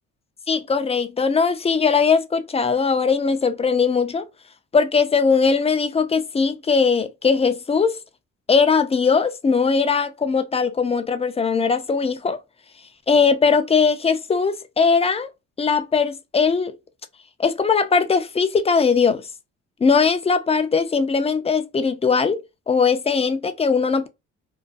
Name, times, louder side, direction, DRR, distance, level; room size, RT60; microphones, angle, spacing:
voice 1, 0.5-4.3 4.7-8.0 8.5-12.4 13.1-15.3 15.6-16.8 17.4-19.3 19.8-24.1, left 5 dB, 20° left, 0.3 m, -20 dB
2.3 x 2.2 x 2.4 m
cardioid pair, 90°, 30 cm